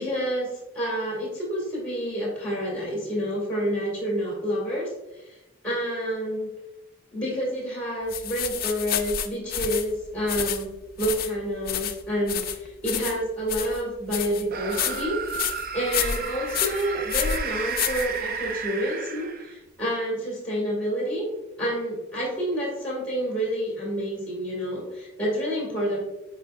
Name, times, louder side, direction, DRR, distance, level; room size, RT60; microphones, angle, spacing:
voice 1, 0.0-5.4 5.6-6.5 7.1-10.7 11.0-21.3 21.6-26.0, equal, 5° left, -5 dB, 2.1 m, -29 dB
sound 1, 8.1-18.6, left 9 dB, 45° left, 0.4 m, -30 dB
sound 2, 14.5-19.7, right 6 dB, 45° right, 0.4 m, -33 dB
8.1 x 4.9 x 2.5 m, 0.98 s
head